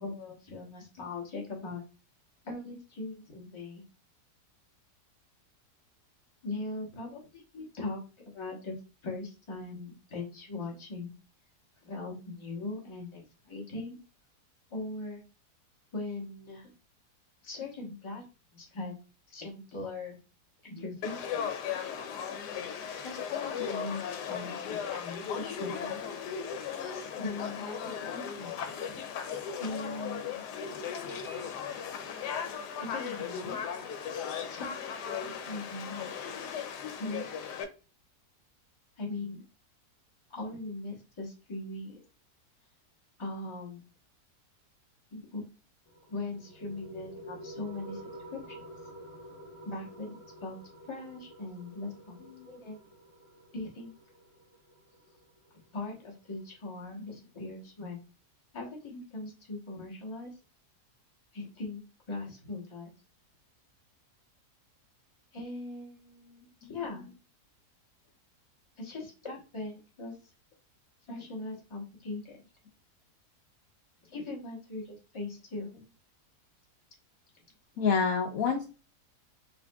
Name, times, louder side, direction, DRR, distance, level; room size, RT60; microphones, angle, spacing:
voice 1, 0.0-1.8 2.4-3.8 6.4-8.0 8.3-8.8 9.0-11.1 11.8-14.0 14.7-15.2 15.9-16.7 17.4-18.2 18.5-19.0 19.3-20.2 20.6-21.6 23.0-26.0 27.2-28.7 29.6-30.5 30.8-30.9 32.8-33.6 34.5-36.1 37.0-37.3 39.0-39.4 40.3-42.0 43.2-43.8 45.1-45.4 46.1-48.6 49.6-50.2 50.4-50.6 50.9-52.8 53.5-54.0 55.7-58.0 58.5-60.4 61.3-62.9 65.3-67.0 68.8-70.1 71.1-72.4 74.1-75.7, left 2 dB, 20° left, -1 dB, 0.9 m, -40 dB
Conversation / Crowd, 21.0-37.6, left 7 dB, 85° left, 1.2 m, -37 dB
sound 1, 45.9-56.9, right 1 dB, 55° left, 1.2 m, -49 dB
voice 2, 77.8-78.6, left 5 dB, 70° left, 2 dB, 0.9 m, -28 dB
5.2 x 2.5 x 2.3 m, 0.33 s
omnidirectional pair, 1.7 m